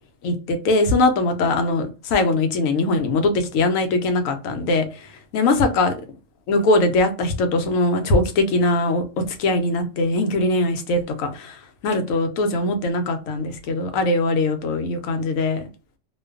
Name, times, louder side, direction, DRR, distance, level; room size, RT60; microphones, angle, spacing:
voice 1, 0.2-6.0 6.5-11.6 11.8-15.7, left 2 dB, 90° left, 1.0 m, -21 dB
2.5 x 2.2 x 2.3 m
omnidirectional pair, 1.3 m